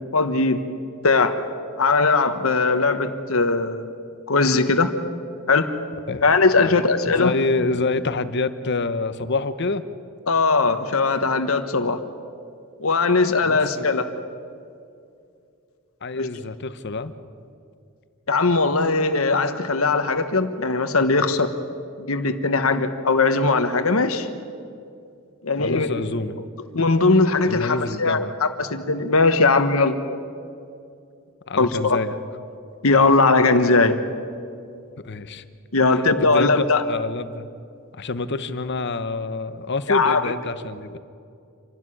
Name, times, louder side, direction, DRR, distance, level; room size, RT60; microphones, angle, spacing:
voice 1, 0.1-0.6 1.0-1.4 1.8-3.9 4.3-4.9 5.5-5.7 6.2-7.3 10.3-12.0 12.8-14.1 16.2-16.3 18.3-21.5 22.0-24.3 25.4-25.9 26.7-30.0 31.6-32.0 32.8-34.0 35.7-36.8 39.9-40.2, left 3 dB, 75° left, 9 dB, 1.3 m, -19 dB
voice 2, 6.6-9.8 13.4-13.9 16.0-17.1 25.6-26.4 27.4-28.3 31.5-32.2 35.0-35.4 35.9-37.5 38.0-41.0, left 3 dB, 55° left, 12 dB, 1.0 m, -27 dB
26.5 x 12.5 x 10.0 m, 2.5 s
head